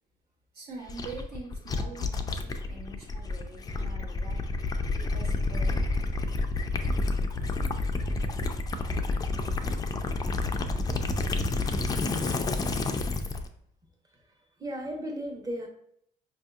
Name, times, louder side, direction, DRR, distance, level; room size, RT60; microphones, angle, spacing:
voice 1, 0.5-4.4 4.9-5.8, right 3 dB, 65° right, -1 dB, 1.3 m, -44 dB
Gurgling / Liquid, 0.9-13.5, left 3 dB, 20° left, 0.4 m, -29 dB
voice 2, 14.6-15.7, equal, 20° right, 2 dB, 0.8 m, -35 dB
5.0 x 2.7 x 2.3 m, 0.69 s
cardioid pair, 110°, 17 cm